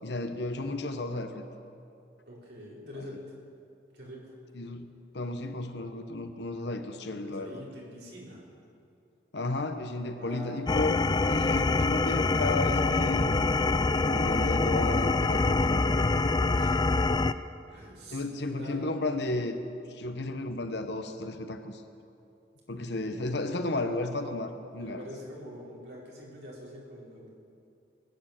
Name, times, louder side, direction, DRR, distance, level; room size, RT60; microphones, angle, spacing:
voice 1, 0.0-1.4 4.5-7.6 9.3-13.5 14.0-16.2 18.1-19.6 19.9-21.8 22.7-25.1, left 2 dB, 65° left, 7 dB, 1.1 m, -33 dB
voice 2, 2.3-3.3 3.9-4.3 7.2-8.5 10.0-10.6 16.5-17.3 17.7-18.9 22.7-23.2 24.8-27.3, equal, 65° right, -5 dB, 4.6 m, -45 dB
sound 1, 10.7-17.3, left 3 dB, 20° left, 0.3 m, -25 dB
20.5 x 9.1 x 7.5 m, 2.6 s
head